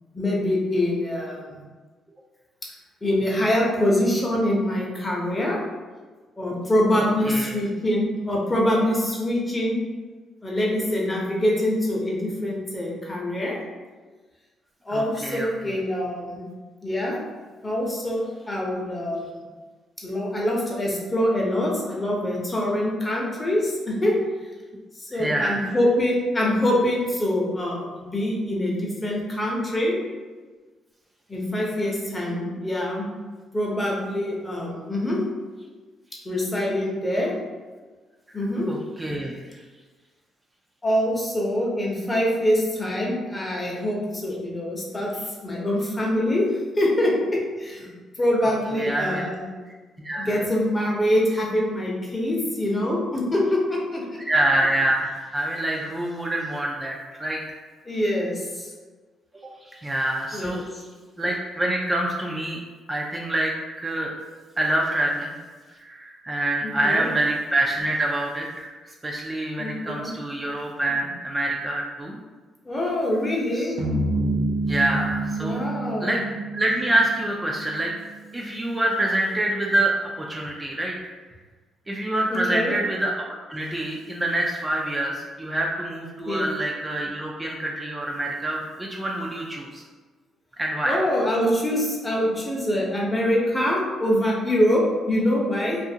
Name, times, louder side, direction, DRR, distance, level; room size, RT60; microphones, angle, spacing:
voice 1, 0.1-1.6 2.6-2.7 3.0-5.6 6.4-9.8 10.4-13.6 14.8-16.4 16.8-17.2 17.6-19.3 20.0-24.1 25.0-30.0 31.3-33.1 33.5-35.2 36.2-37.3 38.3-38.7 40.8-45.1 45.4-46.4 46.7-47.9 48.2-49.5 50.2-54.2 57.8-58.7 60.3-60.6 66.6-67.1 69.6-70.1 72.6-73.8 75.4-76.2 82.3-82.8 86.2-86.4 90.8-95.8, left 1 dB, 20° left, -3 dB, 0.7 m, -24 dB
voice 2, 7.0-7.6 14.9-15.8 25.1-25.7 38.3-38.4 38.7-39.6 48.3-49.3 50.0-50.4 54.3-57.6 59.6-60.6 61.2-62.6 62.9-64.1 64.6-65.3 65.7-72.2 73.5-73.7 74.7-75.6 76.0-76.2 76.5-77.9 78.3-81.1 81.9-83.2 83.5-89.8 90.6-91.0, right 1 dB, 20° right, -2 dB, 0.3 m, -26 dB
sound 1, 73.8-78.2, right 2 dB, 75° right, 0.5 m, -28 dB
2.6 x 2.4 x 2.7 m, 1.4 s
cardioid pair, 90°, 0 cm